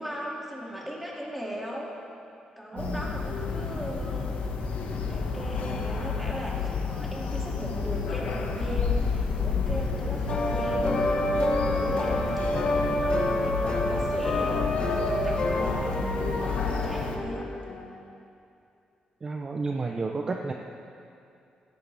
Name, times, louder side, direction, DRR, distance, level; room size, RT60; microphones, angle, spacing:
voice 1, 0.0-1.9 2.6-4.4 5.1-16.0 16.3-17.5, equal, 5° right, -4 dB, 2.4 m, -37 dB
voice 2, 2.7-3.0 19.2-20.5, right 3 dB, 30° right, 2 dB, 0.6 m, -31 dB
sound 1, 2.8-17.2, left 4 dB, 80° left, 1.5 m, -30 dB
sound 2, 10.3-17.9, left 1 dB, 45° left, 1.4 m, -28 dB
16.5 x 14.0 x 3.4 m, 2.5 s
cardioid pair, 140°, 3 cm